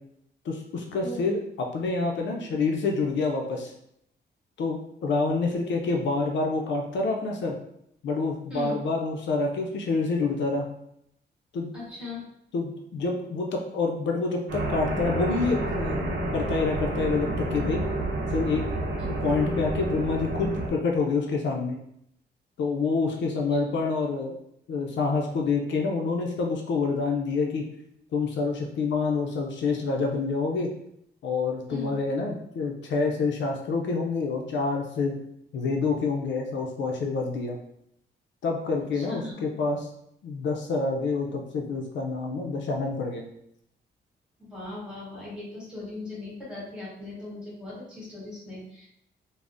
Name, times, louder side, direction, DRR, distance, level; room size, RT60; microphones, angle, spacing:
voice 1, 0.4-3.7 4.6-7.6 8.0-10.7 11.5-11.7 12.5-16.0 16.3-17.8 18.3-18.7 19.2-21.8 22.6-24.4 24.7-27.7 28.1-30.7 31.2-35.2 35.5-37.6 38.4-39.9 40.2-43.2, left 4 dB, 80° left, 1 dB, 0.4 m, -27 dB
voice 2, 11.7-12.2 19.0-19.1 23.5-23.6 31.7-31.9 38.9-39.4 44.4-48.9, left 2 dB, 5° right, -8 dB, 1.4 m, -39 dB
sound 1, 14.5-20.7, right 1 dB, 75° right, 0.7 m, -29 dB
3.4 x 2.0 x 2.5 m, 0.75 s
wide cardioid pair, 135°, 19 cm